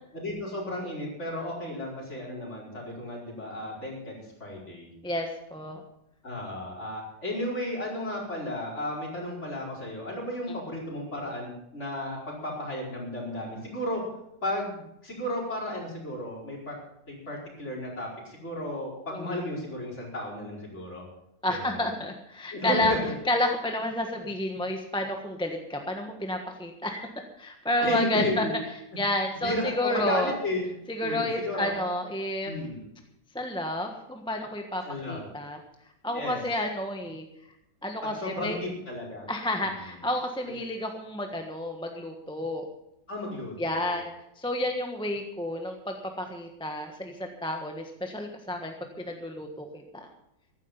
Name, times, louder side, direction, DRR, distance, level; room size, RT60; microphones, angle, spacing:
voice 1, 0.1-4.9 6.2-14.0 14.4-16.8 17.1-21.0 21.5-21.8 22.5-23.0 27.8-28.5 29.4-30.7 31.0-31.7 32.4-32.8 34.8-35.3 36.1-36.4 38.0-39.3 39.6-39.9 43.1-44.0, left 1 dB, 40° left, -3 dB, 5.1 m, -33 dB
voice 2, 5.0-5.8 19.1-19.4 21.4-22.9 23.3-27.1 27.4-28.5 29.0-30.3 30.9-32.5 33.3-35.6 36.0-37.3 37.8-38.6 39.3-42.7 43.6-50.1, left 1 dB, 5° left, 3 dB, 1.1 m, -30 dB
15.0 x 12.0 x 5.5 m, 0.83 s
omnidirectional pair, 1.9 m